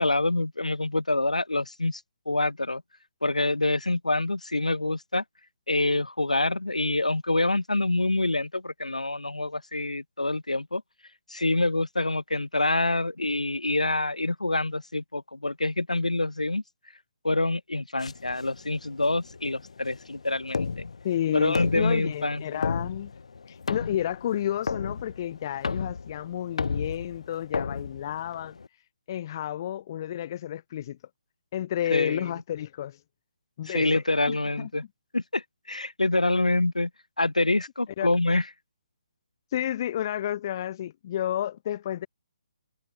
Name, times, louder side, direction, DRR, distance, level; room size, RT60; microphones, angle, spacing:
voice 1, 0.0-2.0 2.3-2.8 3.2-5.2 5.7-10.8 11.3-16.6 17.2-20.9 21.3-22.7 31.9-32.3 33.7-34.8 35.1-36.9 37.2-38.4, left 2 dB, 90° left, 1.9 m, -26 dB
sound 1, 18.0-28.7, left 5 dB, 65° left, 1.6 m, -34 dB
voice 2, 21.0-23.1 23.5-28.6 29.1-31.0 31.5-33.0 33.6-34.7 38.0-38.1 39.5-42.1, left 11 dB, 40° left, 0.5 m, -31 dB
figure-of-eight pair, 140°, 4 cm